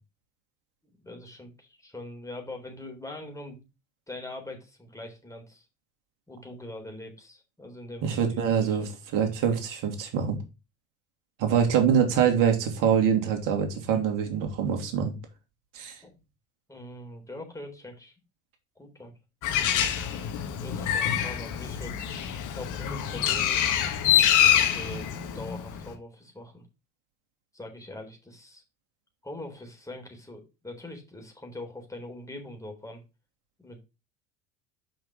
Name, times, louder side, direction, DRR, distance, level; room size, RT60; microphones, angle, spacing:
voice 1, 1.0-3.6 4.1-5.7 6.3-8.5 8.8-8.9 11.4-11.6 16.0-16.1 16.7-18.1 18.8-19.1 19.5-19.9 20.6-22.0 22.5-23.7 24.5-25.1 25.3-26.7 27.5-28.6 29.2-33.0 33.6-33.8, left 2 dB, 10° left, 3.7 m, -42 dB
voice 2, 8.0-10.4 11.4-15.1 15.7-16.0, right 7 dB, 60° right, 2.9 m, -24 dB
Bird, 19.4-25.9, left 9 dB, 55° left, 1.5 m, -25 dB
5.9 x 5.8 x 5.0 m
hypercardioid pair, 75°, 36 cm